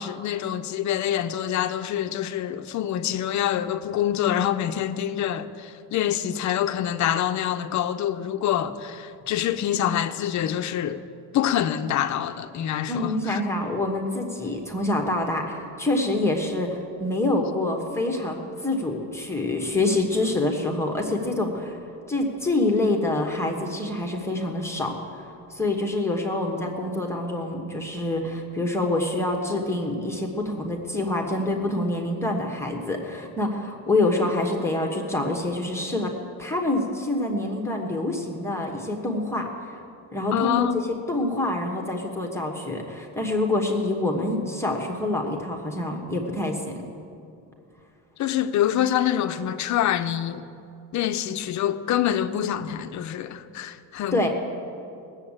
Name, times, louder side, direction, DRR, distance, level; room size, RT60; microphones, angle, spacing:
voice 1, 0.0-13.4 40.3-40.9 48.2-50.4 50.9-54.3, left 10 dB, 50° left, 0.6 m, -26 dB
voice 2, 12.9-21.8 22.1-36.1 36.4-39.8 40.1-40.8 41.1-46.8 54.1-54.3, left 2 dB, 5° left, 1.1 m, -26 dB
19.0 x 7.2 x 8.7 m
cardioid pair, 165°, 39 cm